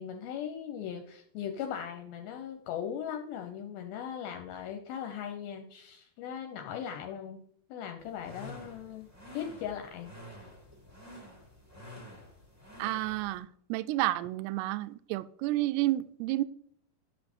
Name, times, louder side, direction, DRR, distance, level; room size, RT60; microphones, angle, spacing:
voice 1, 0.0-7.4 7.7-9.1 9.3-10.1, left 8 dB, 75° left, 5 dB, 2.4 m, -39 dB
sound 1, 8.0-13.4, left 1 dB, 20° right, 0.4 m, -49 dB
voice 2, 12.8-16.4, right 16 dB, 85° right, 14 dB, 2.6 m, -31 dB
10.5 x 6.3 x 4.3 m, 0.67 s
omnidirectional pair, 4.7 m